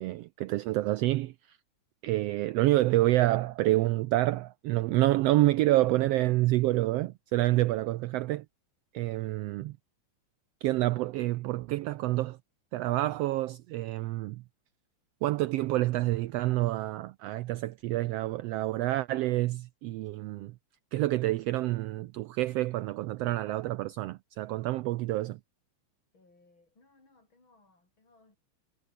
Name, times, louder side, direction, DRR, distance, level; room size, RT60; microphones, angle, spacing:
voice 1, 0.0-1.6 2.0-8.5 8.9-9.8 10.6-12.4 12.7-14.4 15.2-20.5 20.9-25.4, right 17 dB, 85° right, 1.4 m, -28 dB
voice 2, 26.1-28.4, left 2 dB, 40° left, 7.4 m, -63 dB
omnidirectional pair, 3.4 m